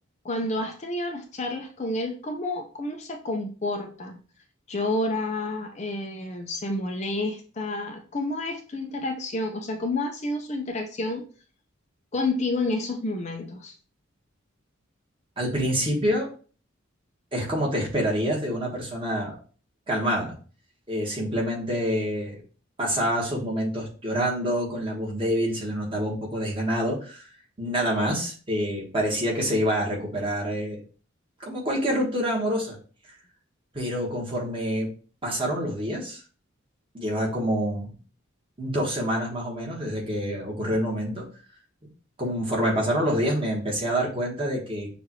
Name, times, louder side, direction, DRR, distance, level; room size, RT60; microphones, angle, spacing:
voice 1, 0.2-4.2 4.7-11.2 12.1-13.7, left 2 dB, 35° left, 4 dB, 0.5 m, -29 dB
voice 2, 15.4-16.3 17.3-19.4 19.9-20.3 20.9-22.4 22.8-27.3 27.6-30.8 31.4-32.8 33.7-34.9 35.2-36.2 36.9-37.9 38.6-41.3 42.2-44.9, equal, 25° right, -3 dB, 1.4 m, -27 dB
6.5 x 2.5 x 3.0 m, 0.39 s
head